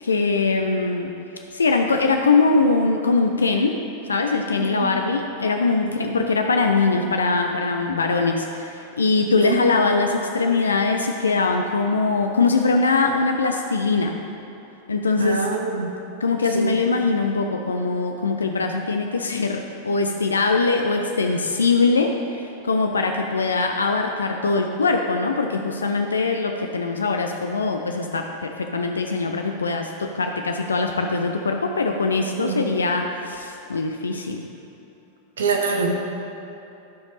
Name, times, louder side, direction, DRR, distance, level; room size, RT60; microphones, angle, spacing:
voice 1, 0.0-1.1 1.5-3.8 4.1-14.1 14.9-15.5 16.2-34.5, left 3 dB, 75° left, 4 dB, 0.4 m, -22 dB
voice 2, 15.2-15.9 16.5-16.7 32.4-32.6 35.4-36.0, right 4 dB, 65° right, 2 dB, 1.0 m, -24 dB
11.5 x 5.1 x 4.1 m, 2.9 s
figure-of-eight pair, 90°, 0 cm